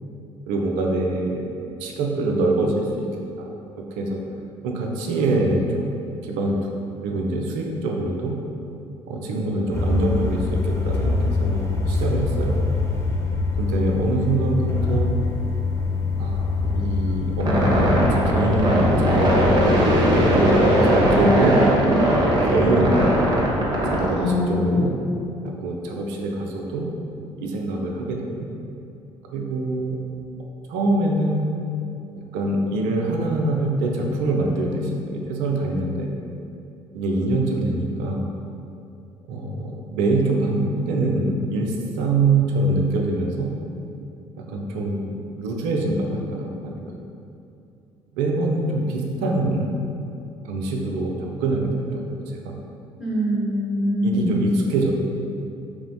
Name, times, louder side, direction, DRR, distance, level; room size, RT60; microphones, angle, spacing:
voice 1, 0.5-1.5 1.8-3.1 3.4-3.5 3.9-4.2 4.6-5.9 6.2-6.6 7.0-8.3 9.1-12.5 13.6-15.1 16.2-19.3 20.3-21.7 22.4-23.3 23.9-24.9 25.4-26.9 27.4-28.2 29.3-30.0 30.7-31.5 32.3-36.1 36.9-38.2 39.3-43.5 44.4-46.9 48.1-49.7 50.5-52.5 54.0-55.0, right 2 dB, 70° right, 0 dB, 0.4 m, -24 dB
sound 1, 9.7-20.5, left 4 dB, 20° left, 0.4 m, -24 dB
sound 2, 17.4-24.1, right 1 dB, 30° right, 0.6 m, -19 dB
voice 2, 24.1-24.9 53.0-54.3, left 1 dB, ahead, -9 dB, 1.0 m, -23 dB
3.0 x 2.0 x 2.6 m, 2.7 s
hypercardioid pair, 55°, 14 cm